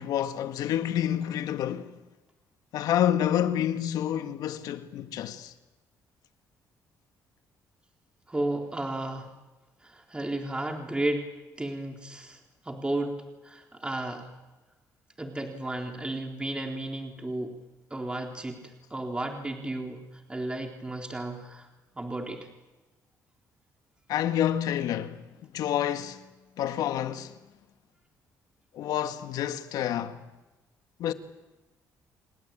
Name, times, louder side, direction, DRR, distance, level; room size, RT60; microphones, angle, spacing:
voice 1, 0.0-1.9 2.7-5.5 24.1-25.2 25.5-26.2 26.6-27.3 28.8-30.2 31.0-31.1, left 10 dB, 80° left, 1.8 m, -28 dB
voice 2, 8.3-9.3 9.8-11.3 11.6-12.4 12.6-13.2 13.4-14.3 15.2-17.6 17.9-21.7 22.0-22.5, right 1 dB, 15° right, 3.8 m, -33 dB
29.0 x 19.5 x 9.0 m
cardioid pair, 85°, 6 cm